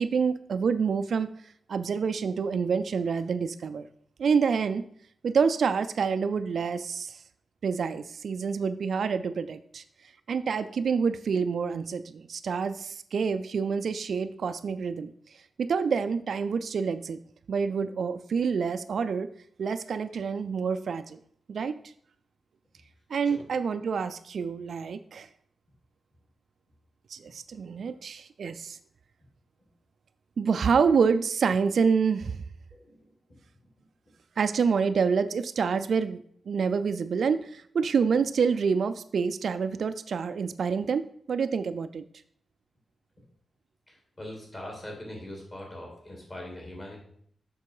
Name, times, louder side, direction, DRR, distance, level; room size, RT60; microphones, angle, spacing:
voice 1, 0.0-3.9 4.2-4.8 5.2-7.2 7.6-9.8 10.3-17.2 17.5-19.3 19.6-21.2 21.5-21.8 23.1-25.3 27.1-28.8 30.4-32.4 34.4-42.0, right 5 dB, 60° right, 11 dB, 0.3 m, -27 dB
voice 2, 32.7-33.4 43.9-47.0, left 1 dB, 30° left, -1 dB, 2.7 m, -42 dB
6.8 x 6.1 x 4.8 m, 0.64 s
wide cardioid pair, 170°, 0 cm